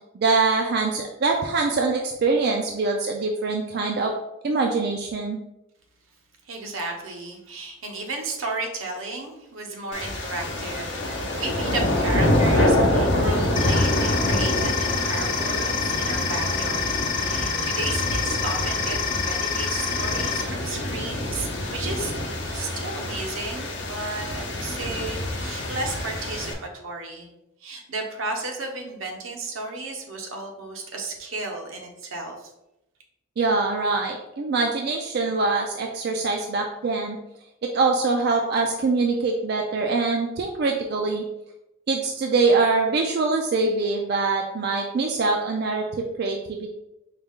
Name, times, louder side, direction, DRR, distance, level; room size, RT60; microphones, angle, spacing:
voice 1, 0.1-4.1 4.4-5.4 33.4-37.2 37.7-41.2 41.9-46.7, right 3 dB, 50° right, 2 dB, 0.4 m, -24 dB
voice 2, 6.5-16.9 17.2-22.1 22.5-27.3 27.6-32.5, right 2 dB, 80° right, 2 dB, 0.8 m, -33 dB
sound 1, 9.9-26.5, left 1 dB, 60° left, 0.8 m, -26 dB
sound 2, 13.6-20.4, left 6 dB, 25° left, 0.6 m, -28 dB
4.8 x 2.3 x 3.6 m, 0.90 s
head